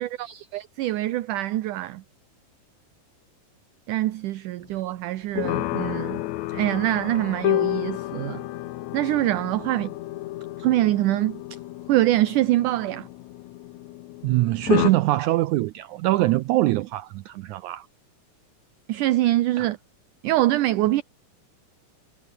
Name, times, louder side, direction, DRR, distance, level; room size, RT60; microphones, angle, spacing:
voice 1, 0.0-2.0 3.9-6.2 6.5-8.4 8.9-9.9 10.6-11.6 11.9-13.1 18.9-19.8 20.2-21.0, right 15 dB, 70° right, 2.2 m, -24 dB
sound 1, 5.3-14.9, left 16 dB, 75° left, 1.7 m, -30 dB
voice 2, 14.2-17.9 19.6-19.7, right 17 dB, 85° right, 1.7 m, -23 dB
omnidirectional pair, 4.1 m